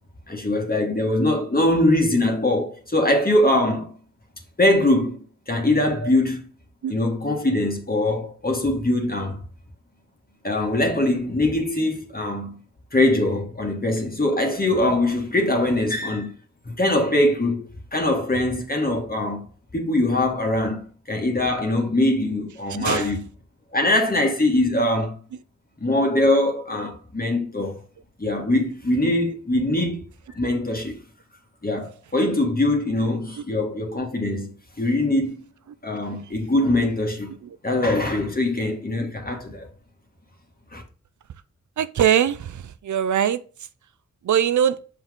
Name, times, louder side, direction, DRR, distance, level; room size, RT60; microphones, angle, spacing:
voice 1, 0.3-3.9 4.6-6.5 6.9-9.4 10.4-12.6 12.9-16.3 16.7-19.4 19.7-20.8 21.1-23.3 23.7-25.2 25.8-27.8 28.2-30.0 30.3-31.0 31.6-34.5 34.8-35.3 35.8-37.4 37.6-39.7 40.7-40.8, left 1 dB, 30° left, 1.8 m, -22 dB
voice 2, 22.8-23.1 41.8-42.5 42.8-43.4 44.3-44.8, right 9 dB, 80° right, 0.5 m, -21 dB
5.8 x 4.6 x 3.7 m
cardioid pair, 45°, 30 cm